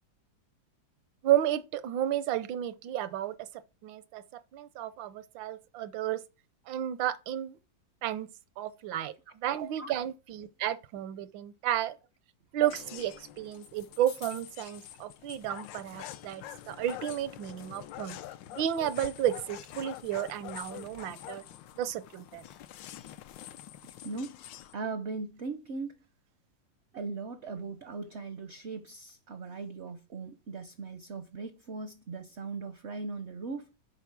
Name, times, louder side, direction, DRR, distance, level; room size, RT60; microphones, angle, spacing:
voice 1, 1.2-3.3 3.8-6.2 6.7-7.6 8.0-8.3 8.6-12.0 12.5-18.2 18.5-21.4 21.7-22.4, right 11 dB, 85° right, 1.4 m, -32 dB
sound 1, 12.6-24.7, left 12 dB, 80° left, 1.3 m, -46 dB
voice 2, 23.8-26.0 26.9-33.8, right 4 dB, 65° right, 0.6 m, -39 dB
8.2 x 5.0 x 6.0 m
omnidirectional pair, 2.0 m